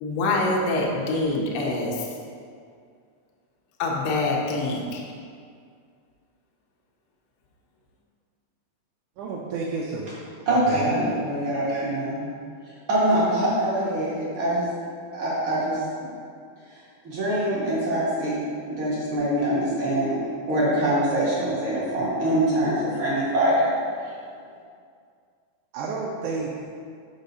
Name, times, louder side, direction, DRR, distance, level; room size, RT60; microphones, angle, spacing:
voice 1, 0.0-2.1 3.8-5.0, left 2 dB, 75° left, -2 dB, 1.3 m, -25 dB
voice 2, 9.2-10.1 10.5-10.9 25.7-26.7, right 4 dB, 90° right, -2 dB, 2.1 m, -31 dB
voice 3, 10.5-12.2 12.7-14.7 15.1-16.1 16.7-16.8 17.0-18.4 18.7-20.2 20.5-23.7 24.0-24.1, right 1 dB, 55° right, -8 dB, 1.5 m, -24 dB
5.2 x 5.1 x 4.1 m, 2.2 s
omnidirectional pair, 3.4 m